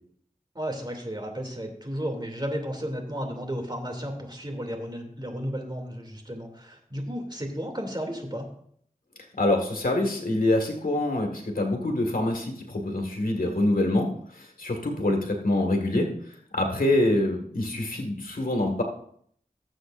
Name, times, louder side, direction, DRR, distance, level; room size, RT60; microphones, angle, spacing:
voice 1, 0.5-8.5 16.8-16.9, equal, 30° right, 3 dB, 2.8 m, -33 dB
voice 2, 9.4-16.1 16.5-18.8, left 1 dB, 75° left, 2 dB, 1.9 m, -25 dB
18.5 x 7.9 x 2.6 m, 0.65 s
cardioid pair, 40°, 15 cm